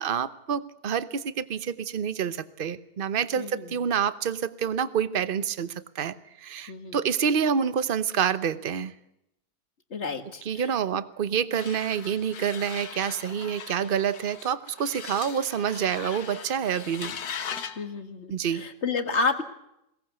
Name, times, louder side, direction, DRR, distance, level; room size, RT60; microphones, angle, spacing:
voice 1, 0.0-8.9 10.4-17.1 18.3-18.6, right 7 dB, 40° right, 14 dB, 0.9 m, -28 dB
voice 2, 3.4-3.7 6.7-7.0 9.9-10.7 17.8-19.4, left 4 dB, 45° left, 8 dB, 1.9 m, -30 dB
sound 1, 11.5-17.8, left 7 dB, 70° left, 1.7 m, -39 dB
22.0 x 18.5 x 8.2 m, 0.81 s
omnidirectional pair, 1.7 m